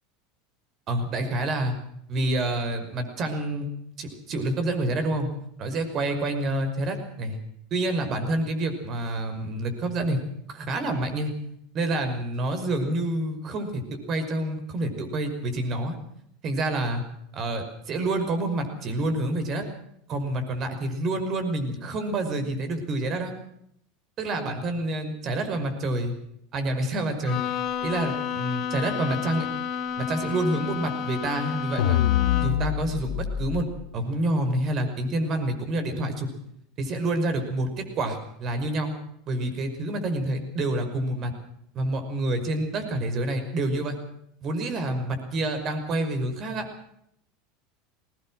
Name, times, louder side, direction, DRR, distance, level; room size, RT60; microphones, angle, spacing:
voice 1, 0.9-1.7 2.1-3.7 4.0-5.3 5.6-7.4 7.7-10.2 10.5-11.3 11.7-13.8 14.1-16.0 16.4-17.0 17.3-19.6 20.1-23.3 24.2-26.1 26.5-27.4 27.8-29.5 30.0-32.0 32.4-33.7 33.9-36.3 36.8-37.7 38.0-38.9 39.3-41.3 41.7-44.0 44.4-46.7, right 1 dB, 40° right, 7 dB, 5.6 m, -28 dB
Bowed string instrument, 27.2-32.8, left 8 dB, 45° left, 2.7 m, -31 dB
sound 1, 31.8-33.6, left 11 dB, 80° left, 1.7 m, -24 dB
21.5 x 20.0 x 6.3 m, 0.72 s
supercardioid pair, 110°, 0 cm